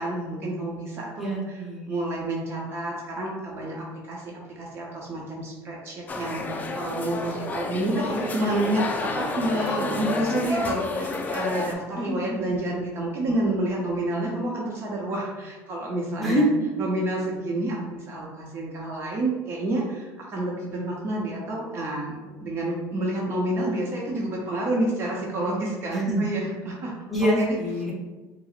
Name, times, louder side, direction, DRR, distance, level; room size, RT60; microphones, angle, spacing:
voice 1, 0.0-16.4 16.8-26.9, right 1 dB, 40° right, -3 dB, 0.7 m, -29 dB
voice 2, 1.2-2.0 12.0-12.4 16.2-16.5 25.9-26.2 27.1-27.9, equal, ahead, -5 dB, 1.0 m, -25 dB
sound 1, 6.1-11.7, left 3 dB, 25° left, 0.4 m, -30 dB
5.6 x 2.0 x 2.4 m, 1.3 s
supercardioid pair, 115°, 7 cm